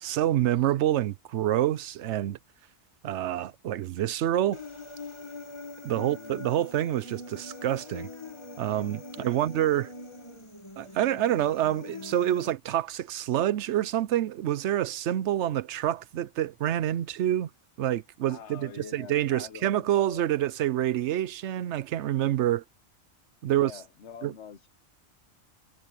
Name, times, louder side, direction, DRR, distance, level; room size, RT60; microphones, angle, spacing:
voice 1, 0.0-2.4 3.0-4.6 5.8-8.1 8.6-9.9 10.8-17.5 17.8-22.6 23.4-23.7 24.2-24.3, right 12 dB, 80° right, 0.9 m, -27 dB
Human voice, 4.5-12.5, left 2 dB, 25° left, 2.0 m, -43 dB
voice 2, 5.9-6.5 9.1-9.5 18.3-20.3 23.5-24.7, left 7 dB, 80° left, 1.3 m, -45 dB
omnidirectional pair, 1.2 m